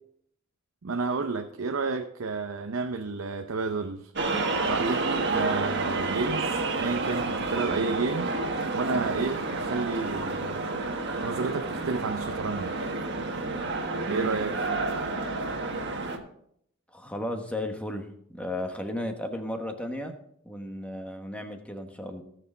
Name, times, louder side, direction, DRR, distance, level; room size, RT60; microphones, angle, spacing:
voice 1, 0.8-4.1 4.7-8.3 8.7-10.7 11.2-12.7 14.1-14.6, right 4 dB, 80° right, 6 dB, 0.7 m, -31 dB
sound 1, 4.2-16.2, right 3 dB, 60° right, 1.5 m, -30 dB
voice 2, 16.9-20.2 20.4-22.2, left 1 dB, 5° left, 5 dB, 1.2 m, -34 dB
17.5 x 6.6 x 3.9 m, 0.69 s
head